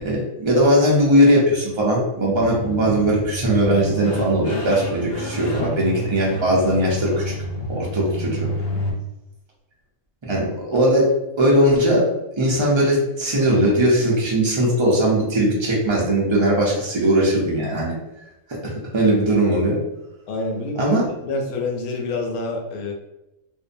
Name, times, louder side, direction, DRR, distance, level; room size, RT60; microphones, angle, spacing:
voice 1, 0.0-7.3 7.7-8.5 10.2-11.1 11.4-12.1 12.4-17.9 18.6-19.8 20.8-21.0, right 1 dB, 50° right, -4 dB, 0.3 m, -19 dB
sound 1, 2.4-8.9, equal, 55° left, 0.7 m, -29 dB
voice 2, 20.3-22.9, left 3 dB, 80° left, 2 dB, 1.1 m, -27 dB
2.6 x 2.1 x 2.5 m, 0.92 s
omnidirectional pair, 1.5 m